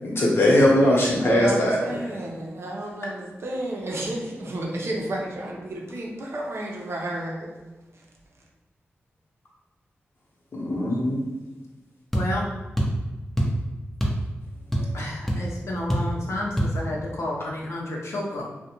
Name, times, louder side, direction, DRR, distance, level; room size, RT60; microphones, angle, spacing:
voice 1, 0.0-1.8 10.5-11.2, left 1 dB, 55° left, -4 dB, 0.9 m, -20 dB
voice 2, 1.1-7.5, right 1 dB, 60° right, -1 dB, 0.6 m, -32 dB
voice 3, 12.1-12.5 14.9-18.5, left 1 dB, 75° left, -3 dB, 0.5 m, -31 dB
sound 1, 12.1-12.3 12.8-13.0 13.4-13.6 14.0-14.2 14.5-15.0 15.3-15.4 15.9-16.1 16.6-16.7, equal, 5° left, 0.6 m, -24 dB
2.4 x 2.1 x 2.8 m, 1.2 s
cardioid pair, 45°, 5 cm